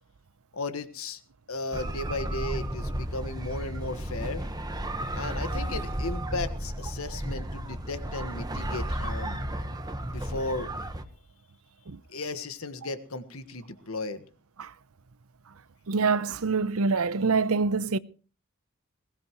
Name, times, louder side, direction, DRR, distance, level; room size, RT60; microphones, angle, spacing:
voice 1, 0.5-1.2 1.5-4.5 5.1-9.4 10.0-10.7 12.1-14.2, left 2 dB, 70° left, 1.5 m, -35 dB
sound 1, 1.7-11.0, right 1 dB, 20° right, 1.3 m, -33 dB
voice 2, 15.9-18.0, right 4 dB, 80° right, 0.7 m, -25 dB
21.0 x 18.0 x 3.1 m
head